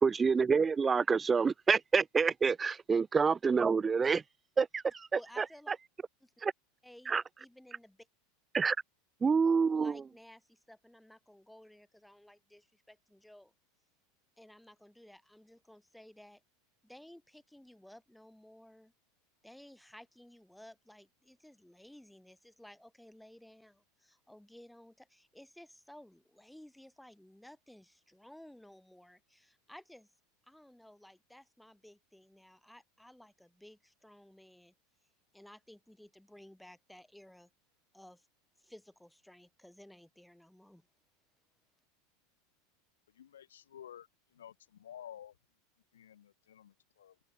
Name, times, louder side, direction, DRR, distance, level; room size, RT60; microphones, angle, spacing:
voice 1, 0.0-4.2 4.6-5.1 5.4-5.5 6.4-6.5 7.1-7.2 8.5-8.8 9.2-10.0, right 5 dB, 20° right, 0.4 m, -27 dB
voice 2, 5.1-5.7 6.2-6.3 6.8-7.1 7.4-8.1 9.7-13.5 14.4-16.4 16.8-18.9 19.4-30.1 30.4-34.7 35.3-37.5 37.9-38.3 38.6-40.9, left 1 dB, ahead, 2.6 m, -56 dB
voice 3, 43.2-44.1 44.3-45.3 45.9-47.1, left 10 dB, 65° left, 0.7 m, -51 dB
figure-of-eight pair, 80°, 0 cm